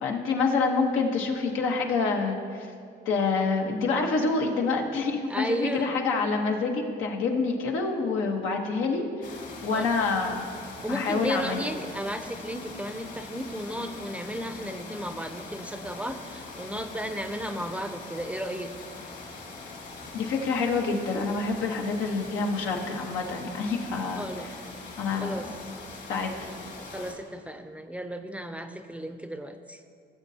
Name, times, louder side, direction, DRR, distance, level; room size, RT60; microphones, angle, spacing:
voice 1, 0.0-2.7 3.1-10.5 10.9-11.6 20.1-24.2 25.0-25.3 25.9-26.4, left 4 dB, 85° left, 1 dB, 1.1 m, -27 dB
voice 2, 5.3-5.9 9.7-9.9 10.8-18.7 24.2-24.5 25.2-25.5 26.8-29.8, equal, 5° right, 7 dB, 0.5 m, -34 dB
sound 1, 9.2-27.1, left 3 dB, 55° left, 2.0 m, -42 dB
16.5 x 7.4 x 2.8 m, 2.3 s
cardioid pair, 90°, 20 cm